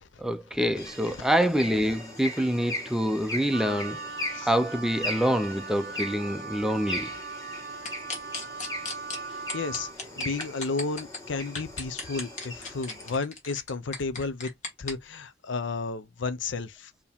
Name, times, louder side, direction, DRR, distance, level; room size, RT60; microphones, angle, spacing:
voice 1, 0.2-4.0 4.4-7.1, equal, 5° right, 0.4 m, -26 dB
sound 1, 0.8-13.2, left 1 dB, 20° left, 2.0 m, -39 dB
Wind instrument woodwind instrument, 3.5-10.0, right 4 dB, 65° right, 0.7 m, -39 dB
sound 2, 7.9-9.2 9.5-11.2 11.6-14.9, left 3 dB, 40° left, 1.7 m, -35 dB
voice 2, 9.3-14.5 14.8-16.9, left 4 dB, 70° left, 0.6 m, -33 dB
4.7 x 2.8 x 3.4 m
head